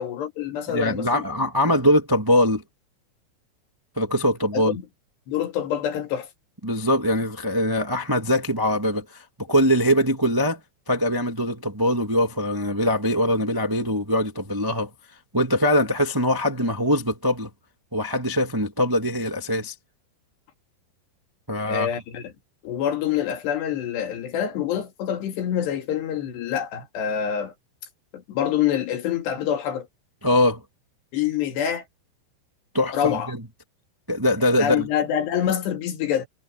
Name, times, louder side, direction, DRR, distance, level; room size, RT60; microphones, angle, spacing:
voice 1, 0.0-1.2 1.7-1.8 4.5-4.8 5.3-6.3 21.7-22.3 22.6-27.5 28.1-29.9 31.1-31.8 32.9-33.3 34.6-36.3, left 9 dB, 70° left, 4.4 m, -26 dB
voice 2, 0.7-2.6 4.0-4.8 6.6-10.6 10.9-14.9 15.3-17.5 17.9-19.7 21.5-21.9 30.2-30.6 32.7-33.4 34.1-34.9, left 1 dB, 20° right, 0.6 m, -22 dB
omnidirectional pair, 5.1 m